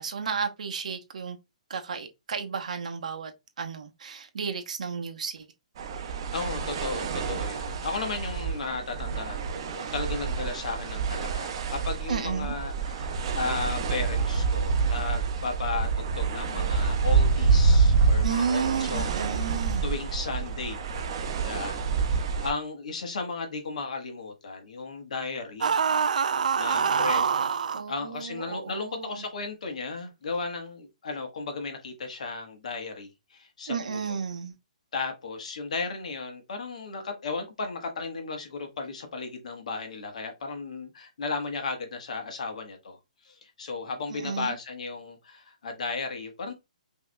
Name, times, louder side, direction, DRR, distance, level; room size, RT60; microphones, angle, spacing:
voice 1, 0.0-1.4 1.7-3.3 3.6-5.5 12.1-12.5 18.2-19.9 27.7-29.2 33.7-34.5 44.1-44.5, right 6 dB, 70° right, 0.9 m, -32 dB
sound 1, 5.8-22.5, right 5 dB, 40° right, 0.7 m, -27 dB
voice 2, 6.3-19.1 19.4-25.8 26.6-27.2 27.9-34.2 34.9-43.0 43.2-46.5, left 4 dB, 65° left, 1.2 m, -35 dB
sound 2, 25.6-27.8, right 6 dB, 85° right, 0.4 m, -25 dB
5.5 x 2.8 x 2.2 m
hypercardioid pair, 170°, 4 cm